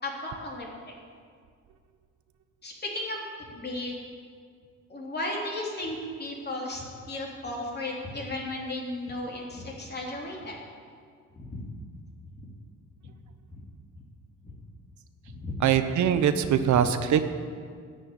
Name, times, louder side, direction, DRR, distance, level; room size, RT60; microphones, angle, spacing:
voice 1, 0.0-0.9 2.6-3.2 3.5-3.9 4.9-10.6 11.3-11.6 13.0-13.1 13.5-13.6 14.4-14.5 15.3-15.5 16.7-16.8, left 1 dB, 35° left, -2 dB, 3.2 m, -35 dB
voice 2, 15.6-17.3, right 9 dB, 70° right, 10 dB, 0.8 m, -22 dB
11.0 x 6.6 x 9.2 m, 2.1 s
cardioid pair, 90°, 30 cm